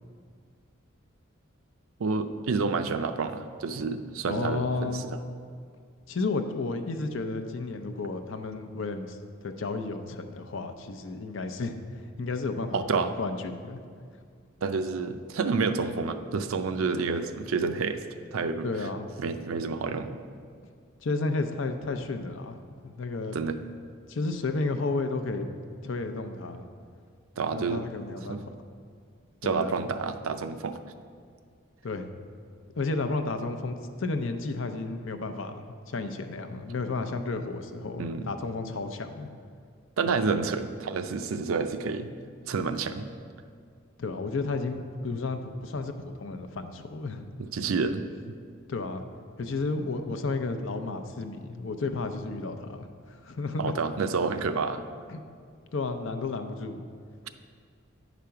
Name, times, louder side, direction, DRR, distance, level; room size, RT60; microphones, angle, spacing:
voice 1, 2.0-5.2 12.7-13.1 14.6-18.0 18.3-18.7 19.2-20.2 23.3-23.6 27.4-27.9 28.3-28.4 29.4-30.8 38.0-38.3 40.0-42.1 42.5-43.1 47.5-48.4 53.6-54.8, right 4 dB, 80° right, 9 dB, 0.5 m, -29 dB
voice 2, 4.3-5.1 6.1-11.8 12.2-13.8 18.6-19.0 21.0-22.6 22.8-23.4 24.1-25.6 25.8-26.7 27.5-28.4 29.4-29.7 31.8-32.1 32.8-39.3 40.1-40.2 44.0-45.9 46.2-47.3 48.7-49.0 49.4-53.7 55.1-55.2 55.7-56.8, left 3 dB, 65° left, 7 dB, 0.6 m, -32 dB
9.4 x 5.1 x 5.7 m, 2.1 s
head